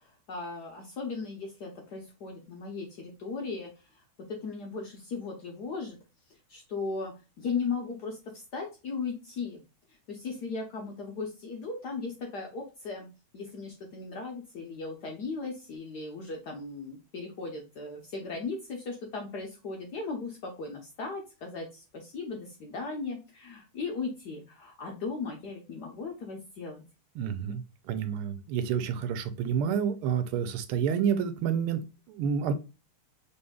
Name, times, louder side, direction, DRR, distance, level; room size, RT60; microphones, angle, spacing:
voice 1, 0.0-4.0 4.3-6.0 6.5-9.6 10.1-13.1 13.3-26.8, left 4 dB, 60° left, 1 dB, 1.1 m, -37 dB
voice 2, 27.2-32.5, right 7 dB, 85° right, 11 dB, 1.5 m, -29 dB
4.1 x 3.5 x 2.2 m, 0.30 s
omnidirectional pair, 2.3 m